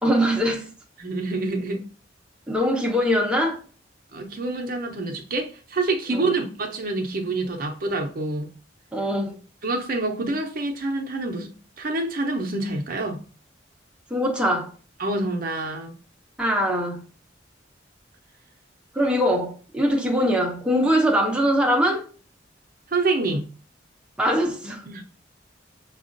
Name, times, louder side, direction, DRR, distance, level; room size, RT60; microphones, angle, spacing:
voice 1, 0.0-0.7 2.5-3.6 6.1-6.3 8.9-9.3 14.1-14.7 16.4-17.0 18.9-22.1 24.2-24.8, equal, 5° right, 0.6 m, -22 dB
voice 2, 1.0-1.9 4.1-8.5 9.6-11.5 11.8-13.2 15.0-15.9 22.9-23.5 24.9-25.0, right 2 dB, 50° right, 0.6 m, -27 dB
5.8 x 2.3 x 2.5 m
head